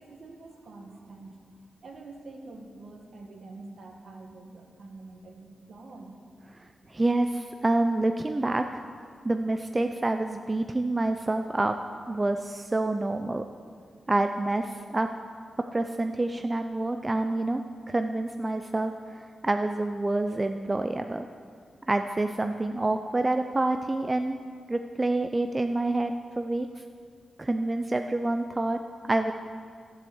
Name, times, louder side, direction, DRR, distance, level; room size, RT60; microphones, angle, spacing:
voice 1, 0.0-1.4 1.8-6.1, right 3 dB, 55° right, 3 dB, 1.7 m, -46 dB
voice 2, 6.6-8.8 9.2-11.8 12.1-13.4 14.1-15.1 15.7-17.6 17.9-21.3 21.9-24.4 24.7-26.8 27.4-28.8 29.0-29.3, right 2 dB, 20° right, 6 dB, 0.4 m, -27 dB
13.5 x 8.0 x 7.9 m, 2.1 s
wide cardioid pair, 160°, 0 cm